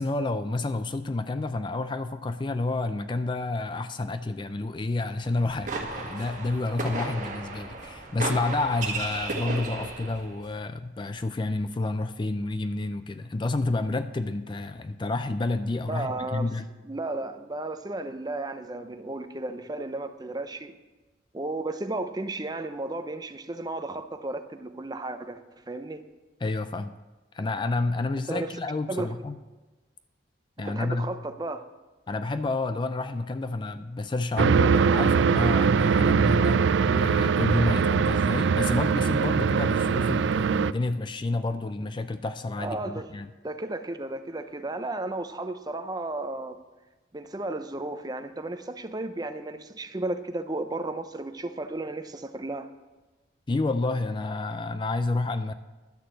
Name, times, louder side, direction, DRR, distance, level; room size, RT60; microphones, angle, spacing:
voice 1, 0.0-16.7 26.4-26.9 27.3-29.4 30.6-31.1 32.1-43.3 53.5-55.5, left 2 dB, 25° left, 11 dB, 0.4 m, -29 dB
sound 1, 5.3-10.3, right 3 dB, 45° right, 1.6 m, -34 dB
voice 2, 15.9-16.5 16.8-20.7 21.3-26.0 28.3-28.5 28.9-29.1 30.6-31.6 42.6-43.1 43.4-46.6 47.1-52.7, right 2 dB, 20° right, 9 dB, 0.7 m, -34 dB
sound 2, 34.4-40.7, right 6 dB, 85° right, 0.4 m, -22 dB
11.5 x 6.4 x 7.7 m, 1.2 s
head